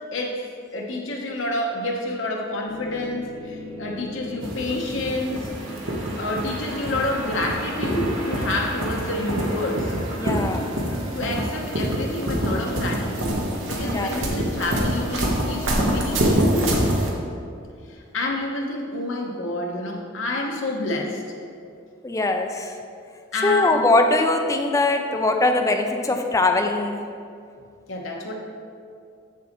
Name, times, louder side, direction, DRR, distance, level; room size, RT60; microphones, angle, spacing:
voice 1, 0.1-0.4 0.7-5.5 6.2-9.9 11.1-16.9 17.9-21.4 23.3-23.8 27.9-28.3, left 2 dB, 70° left, 0 dB, 1.0 m, -28 dB
sound 1, 2.7-13.9, right 1 dB, 35° right, 1.6 m, -38 dB
sound 2, 4.4-17.1, right 1 dB, 65° right, 1.0 m, -25 dB
voice 2, 10.1-10.7 13.8-14.2 22.0-22.8 23.4-27.0, left 2 dB, 15° left, 4 dB, 0.4 m, -21 dB
7.5 x 6.9 x 3.0 m, 2.3 s
head